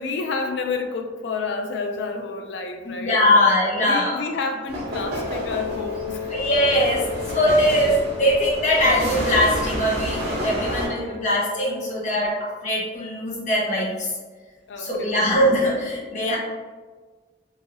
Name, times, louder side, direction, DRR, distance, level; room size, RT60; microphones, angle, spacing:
voice 1, 0.0-3.2 3.8-6.3 11.0-11.1 11.8-12.2 14.7-15.2, left 4 dB, 75° left, 5 dB, 0.4 m, -30 dB
voice 2, 3.0-4.2 6.3-14.2 14.8-16.4, left 1 dB, 40° left, -5 dB, 0.9 m, -21 dB
sound 1, 4.7-10.9, equal, 60° right, 1.0 m, -30 dB
Wind instrument woodwind instrument, 4.9-12.2, left 7 dB, 85° right, 0.4 m, -35 dB
3.0 x 2.7 x 2.6 m, 1.4 s
head